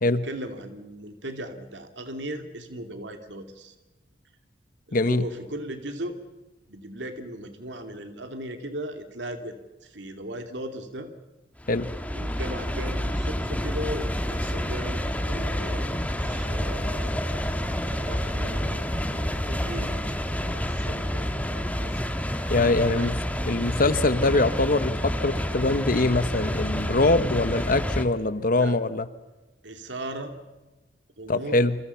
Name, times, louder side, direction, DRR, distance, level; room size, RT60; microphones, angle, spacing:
voice 1, 0.0-3.8 4.9-6.2 6.7-11.1 12.1-17.6 17.9-22.0 22.8-23.2 28.5-28.8 29.6-30.3 31.2-31.6, right 1 dB, 75° right, 6 dB, 2.6 m, -38 dB
voice 2, 4.9-5.2 11.7-11.9 22.5-23.1 23.4-29.0 31.3-31.8, left 2 dB, 50° left, 13 dB, 1.1 m, -23 dB
sound 1, 11.6-28.0, equal, 10° left, 1.7 m, -29 dB
28.5 x 27.0 x 5.7 m, 1.1 s
head